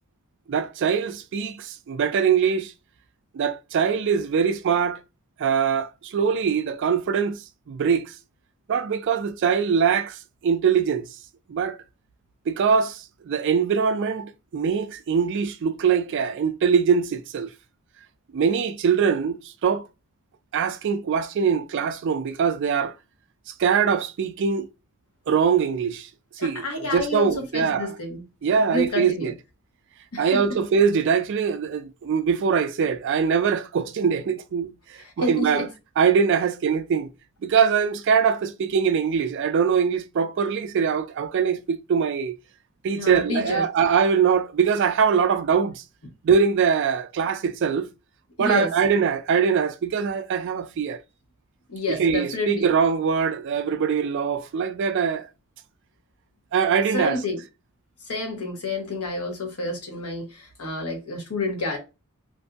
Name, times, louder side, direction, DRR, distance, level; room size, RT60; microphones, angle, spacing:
voice 1, 0.5-2.7 3.3-5.0 5.4-7.4 7.7-8.1 8.7-11.1 11.5-11.8 12.5-17.5 18.3-19.8 20.5-23.0 23.6-24.7 25.3-26.1 26.4-26.7 26.9-28.0 28.4-29.3 30.2-35.7 36.0-37.1 37.4-42.3 42.8-45.8 46.2-47.9 48.4-51.0 51.9-55.3 56.5-57.2, right 6 dB, 55° right, 0.3 m, -22 dB
voice 2, 26.4-28.2 28.7-29.3 30.1-30.4 35.2-35.6 43.0-43.6 48.4-48.7 51.7-52.7 56.9-57.4 58.1-61.8, left 2 dB, 85° left, 1.0 m, -29 dB
2.6 x 2.5 x 2.2 m
head